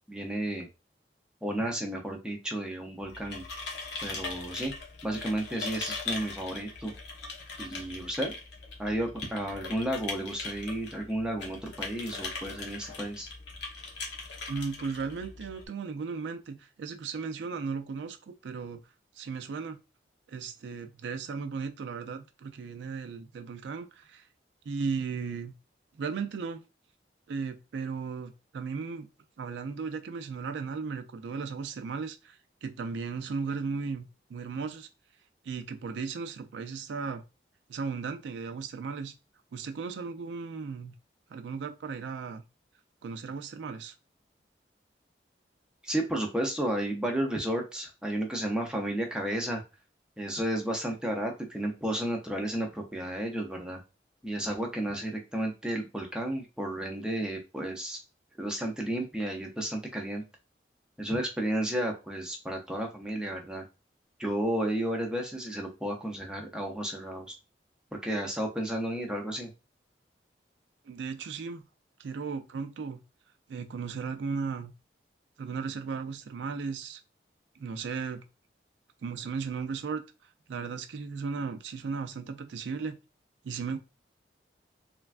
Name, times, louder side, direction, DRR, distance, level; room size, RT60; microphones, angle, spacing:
voice 1, 0.1-0.7 1.4-3.4 4.0-4.7 5.0-6.9 7.6-8.3 8.8-13.3 45.8-49.6 50.2-53.8 54.2-58.0 58.4-60.2 61.0-63.6 64.2-67.3 68.0-69.5, right 1 dB, 5° right, 0.4 m, -32 dB
sound 1, 3.0-15.7, left 3 dB, 80° left, 0.7 m, -40 dB
voice 2, 14.5-18.8 19.2-19.8 20.3-24.2 24.7-25.5 25.9-26.6 27.3-29.1 29.4-34.9 35.4-37.2 37.7-39.1 39.5-40.9 41.3-42.4 43.0-43.9 70.9-71.6 72.0-73.0 73.5-74.7 75.4-77.0 77.6-78.2 79.0-80.0 80.5-83.0 83.4-83.8, right 5 dB, 85° right, 0.4 m, -36 dB
3.2 x 2.2 x 2.4 m
head